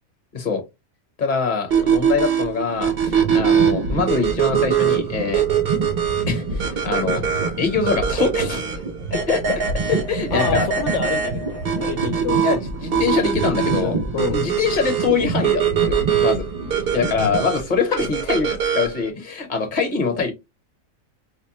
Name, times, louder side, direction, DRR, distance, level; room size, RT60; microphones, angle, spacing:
voice 1, 1.2-5.4 6.3-7.3 7.6-8.8 9.1-9.6 9.9-10.7 12.4-14.0 14.3-16.5 16.9-20.3, left 5 dB, 40° left, 1.0 m, -24 dB
sound 1, 1.7-19.1, right 8 dB, 50° right, 0.8 m, -23 dB
sound 2, 2.6-17.9, right 3 dB, 85° right, 0.3 m, -29 dB
voice 2, 10.3-12.6 13.7-14.5 17.2-17.3, left 6 dB, 70° left, 0.9 m, -28 dB
4.6 x 2.1 x 2.8 m
omnidirectional pair, 1.4 m